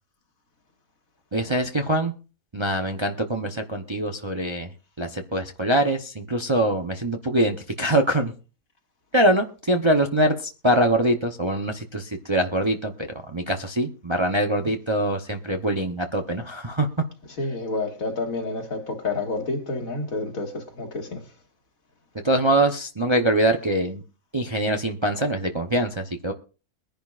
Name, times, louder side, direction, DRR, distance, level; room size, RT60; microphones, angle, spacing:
voice 1, 1.3-2.1 2.5-4.7 5.0-8.3 9.1-16.9 22.2-24.0 24.3-26.3, right 1 dB, 25° right, 0.7 m, -23 dB
voice 2, 17.4-21.2, left 3 dB, 70° left, 2.2 m, -29 dB
22.5 x 10.5 x 2.5 m
omnidirectional pair, 1.5 m